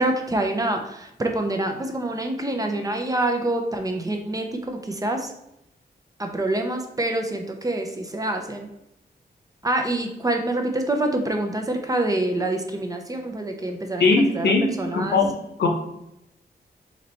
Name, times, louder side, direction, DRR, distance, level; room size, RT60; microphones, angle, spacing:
voice 1, 0.0-5.3 6.2-8.7 9.6-15.2, right 1 dB, 20° right, 4 dB, 0.5 m, -26 dB
voice 2, 14.0-15.3 15.6-15.7, left 3 dB, 80° left, 3 dB, 0.9 m, -20 dB
4.1 x 3.1 x 4.0 m, 0.83 s
wide cardioid pair, 145°, 17 cm